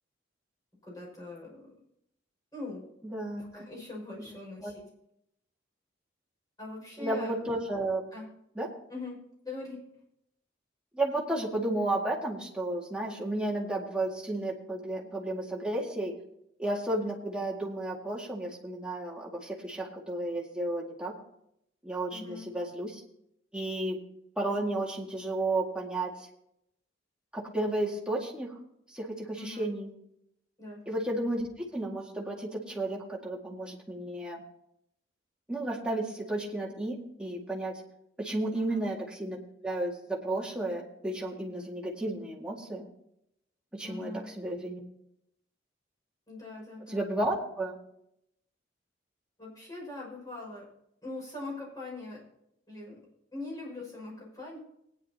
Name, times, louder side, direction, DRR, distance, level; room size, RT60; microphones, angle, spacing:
voice 1, 0.8-1.7 2.5-2.8 3.4-4.9 6.6-7.4 8.1-8.3 8.9-9.2 9.4-9.8 22.1-22.5 29.4-29.7 30.6-30.8 38.5-38.9 43.8-44.3 46.3-47.1 49.4-50.7 51.0-52.2 52.7-53.0 53.3-54.6, left 2 dB, 20° left, -3 dB, 5.9 m, -41 dB
voice 2, 3.0-3.6 4.6-4.7 7.0-8.0 8.6-8.7 10.9-16.1 16.6-21.1 21.8-23.0 23.5-24.0 24.4-26.3 27.3-28.6 28.9-29.9 30.9-34.4 35.5-37.7 38.2-39.4 39.6-42.8 43.7-44.1 44.4-44.8 46.9-47.8, right 1 dB, 5° right, -3 dB, 2.0 m, -33 dB
19.5 x 10.0 x 2.9 m, 0.77 s
head